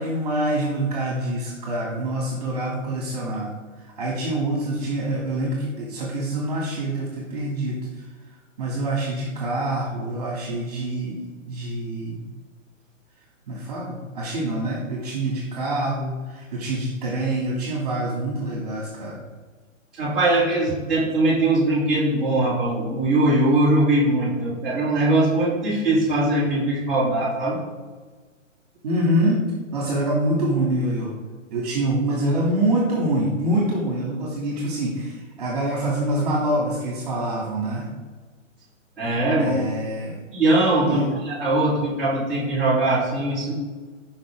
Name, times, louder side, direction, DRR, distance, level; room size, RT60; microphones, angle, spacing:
voice 1, 0.0-3.5 3.8-7.9 8.6-12.2 13.5-19.2 28.8-29.4 29.7-31.1 31.5-37.9 39.4-40.2 40.9-41.1, right 1 dB, 30° right, -3 dB, 2.9 m, -25 dB
voice 2, 19.9-27.6 39.0-39.5 40.3-43.5, right 2 dB, ahead, -16 dB, 3.5 m, -21 dB
15.0 x 6.1 x 3.9 m, 1.4 s
hypercardioid pair, 175°, 40 cm